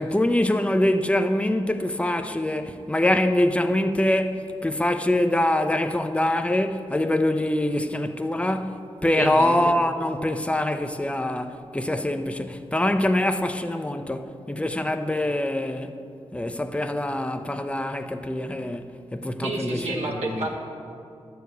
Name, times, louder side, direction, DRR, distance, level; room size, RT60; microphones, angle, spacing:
voice 1, 0.0-15.9 16.3-20.5, left 1 dB, 10° left, 0.7 m, -24 dB
voice 2, 9.1-9.5 19.4-20.6, right 2 dB, 75° right, 1.7 m, -29 dB
11.5 x 4.8 x 8.1 m
cardioid pair, 45°, 11 cm